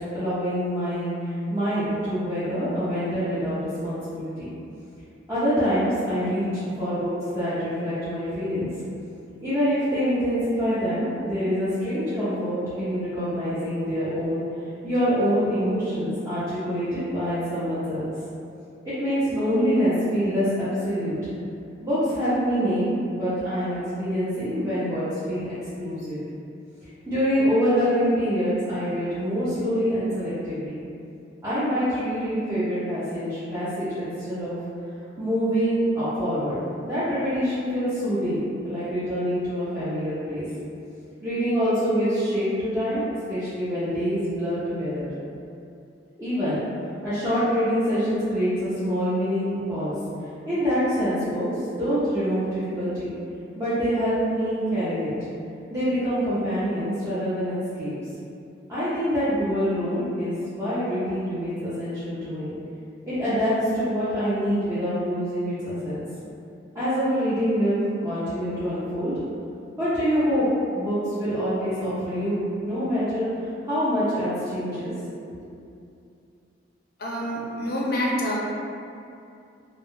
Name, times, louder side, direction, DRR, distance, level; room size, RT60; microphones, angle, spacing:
voice 1, 0.1-4.5 5.3-8.7 9.4-14.4 14.8-18.1 18.8-21.1 21.8-25.4 25.8-26.2 27.1-30.8 31.4-34.6 35.2-36.6 36.8-40.4 41.2-45.1 46.2-46.6 47.0-49.9 50.5-51.5 51.8-53.1 53.6-55.1 55.7-57.9 58.7-62.5 63.1-66.0 66.7-69.1 69.8-70.5 70.7-73.3 73.6-74.9 75.2-75.3, equal, 15° right, -15 dB, 0.5 m, -25 dB
voice 2, 77.0-78.4, equal, 55° left, -3 dB, 0.4 m, -27 dB
2.3 x 2.0 x 2.9 m, 2.6 s
head